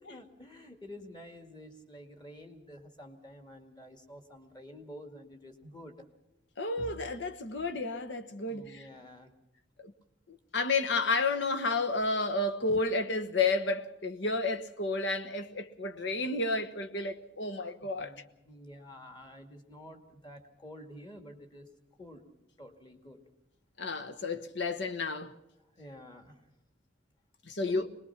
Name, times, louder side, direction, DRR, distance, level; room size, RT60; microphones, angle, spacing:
voice 1, 0.1-5.9 8.5-9.3 17.8-21.7 22.0-22.2 22.6-23.2 25.8-26.4 27.7-27.9, equal, 20° left, 2.1 m, -49 dB
voice 2, 6.6-8.8 9.8-9.9 10.5-18.1 23.8-25.3 27.5-27.9, left 3 dB, 65° left, 1.2 m, -31 dB
23.5 x 20.0 x 5.9 m
head